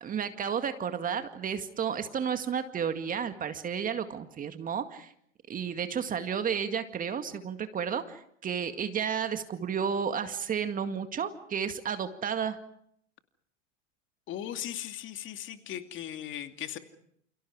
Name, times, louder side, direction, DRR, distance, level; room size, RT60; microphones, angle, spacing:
voice 1, 0.0-5.1 5.5-12.6, right 7 dB, 20° right, 8 dB, 2.0 m, -32 dB
voice 2, 14.3-16.8, left 11 dB, 30° left, 7 dB, 2.6 m, -38 dB
29.0 x 29.0 x 4.9 m, 0.69 s
hypercardioid pair, 100°, 37 cm